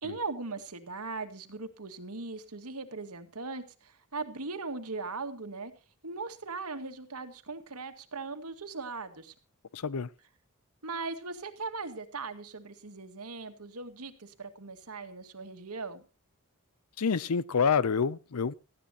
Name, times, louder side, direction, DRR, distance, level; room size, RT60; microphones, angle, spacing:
voice 1, 0.0-5.7 6.0-9.3 10.8-16.0, right 3 dB, 90° right, 2.0 m, -39 dB
voice 2, 9.7-10.1 17.0-18.5, left 6 dB, 85° left, 0.6 m, -27 dB
18.5 x 14.5 x 2.9 m
head